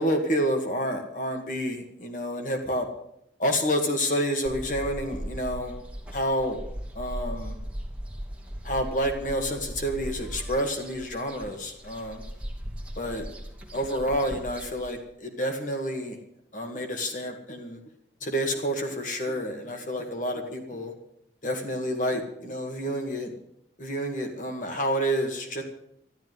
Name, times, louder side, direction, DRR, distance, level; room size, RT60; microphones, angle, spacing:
voice 1, 0.0-2.9 3.4-5.7 6.1-6.6 7.0-7.6 8.6-12.2 13.0-13.3 13.7-16.2 16.5-17.8 18.2-20.9 21.4-23.3 23.8-25.6, equal, 45° left, 4 dB, 2.0 m, -29 dB
sound 1, 4.4-15.0, equal, 5° right, 2.7 m, -38 dB
13.0 x 12.0 x 7.9 m, 0.74 s
head